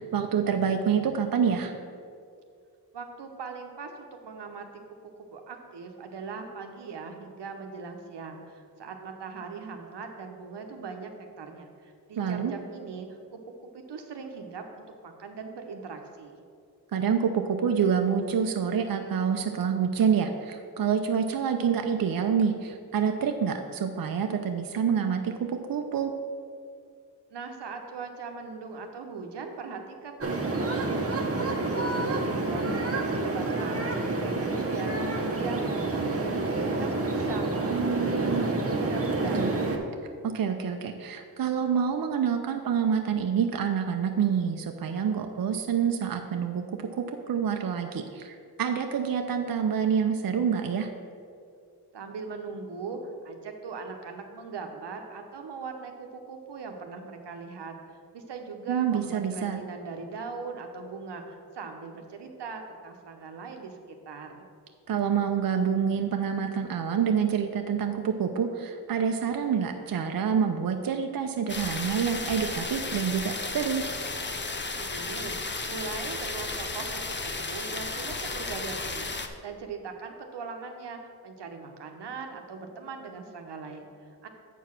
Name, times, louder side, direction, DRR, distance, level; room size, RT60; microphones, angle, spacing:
voice 1, 0.0-1.8 12.2-12.5 16.9-26.1 37.7-38.5 39.3-39.5 40.2-46.6 46.9-50.9 58.7-59.6 64.9-73.8, right 7 dB, 60° right, 5 dB, 0.6 m, -27 dB
voice 2, 2.9-13.4 13.7-16.4 27.3-33.8 34.1-36.2 36.5-39.5 51.9-61.2 61.5-64.5 74.8-75.4 75.6-79.1 79.4-84.3, right 4 dB, 85° right, 4 dB, 0.9 m, -40 dB
sound 1, 30.2-39.8, right 2 dB, 35° right, 1.1 m, -28 dB
sound 2, 71.5-79.3, left 3 dB, 25° left, 0.7 m, -34 dB
8.0 x 4.7 x 5.9 m, 2.3 s
cardioid pair, 55°, 40 cm